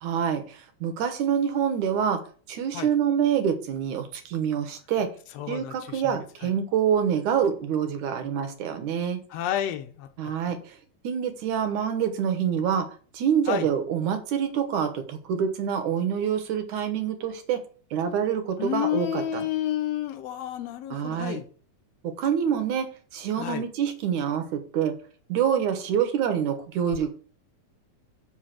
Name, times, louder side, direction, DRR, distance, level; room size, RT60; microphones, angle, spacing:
voice 1, 0.0-2.2 2.5-5.1 5.5-9.2 10.2-10.6 11.0-12.9 13.1-17.6 17.9-19.5 20.9-21.4 22.0-22.9 23.1-25.0 25.3-27.1, right 8 dB, 75° right, 2.5 m, -26 dB
voice 2, 5.3-6.5 9.3-10.3 13.5-13.7 18.6-21.5 23.4-23.6, left 11 dB, 70° left, 1.7 m, -30 dB
7.2 x 5.3 x 5.8 m
omnidirectional pair, 3.7 m